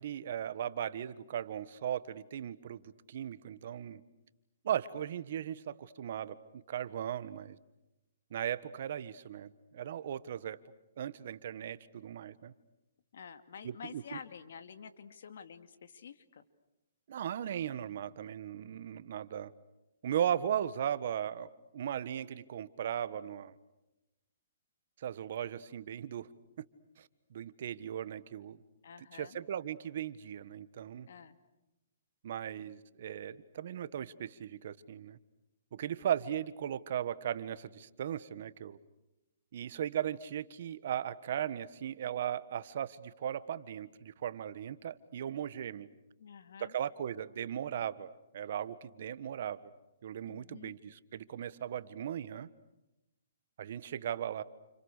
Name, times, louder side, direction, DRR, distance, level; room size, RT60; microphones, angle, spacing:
voice 1, 0.0-4.0 4.6-7.6 8.3-10.6 11.0-12.5 13.6-14.2 17.1-19.5 20.0-23.5 25.0-26.3 26.6-26.7 27.0-28.6 29.0-31.1 32.2-35.2 35.7-38.8 39.5-45.9 46.6-49.7 50.0-52.5 53.6-54.4, right 10 dB, 55° right, 15 dB, 1.4 m, -37 dB
voice 2, 13.1-16.4 28.8-29.4 31.1-31.4 46.2-46.7 50.2-50.8, left 7 dB, 65° left, 9 dB, 2.4 m, -49 dB
30.0 x 29.5 x 6.7 m, 0.96 s
hypercardioid pair, 155°, 0 cm